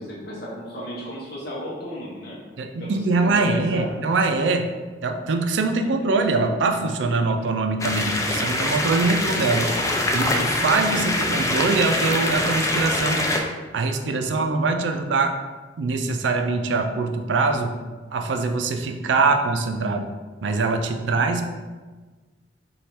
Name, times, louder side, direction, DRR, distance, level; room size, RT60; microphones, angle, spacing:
voice 1, 0.0-2.4 2.8-3.9 8.9-9.1, equal, 60° left, -5 dB, 0.8 m, -34 dB
voice 2, 2.6-4.7 5.0-13.2 13.7-15.4 15.8-17.8 18.1-20.1 20.4-21.4, right 3 dB, 85° right, 5 dB, 0.4 m, -23 dB
sound 1, 7.8-13.4, left 1 dB, 15° left, 0.3 m, -24 dB
3.2 x 2.3 x 4.3 m, 1.3 s
head